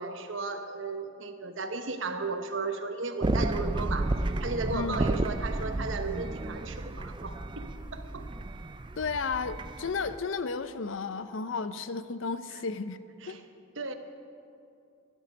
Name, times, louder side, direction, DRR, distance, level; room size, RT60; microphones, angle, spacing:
voice 1, 0.0-8.3 13.2-13.4 13.8-13.9, right 3 dB, 75° right, 8 dB, 1.0 m, -35 dB
sound 1, 3.2-10.2, right 2 dB, 25° right, 0.4 m, -32 dB
voice 2, 9.0-13.0 13.3-13.4, left 4 dB, 75° left, 12 dB, 0.6 m, -33 dB
15.5 x 12.0 x 5.3 m, 2.5 s
head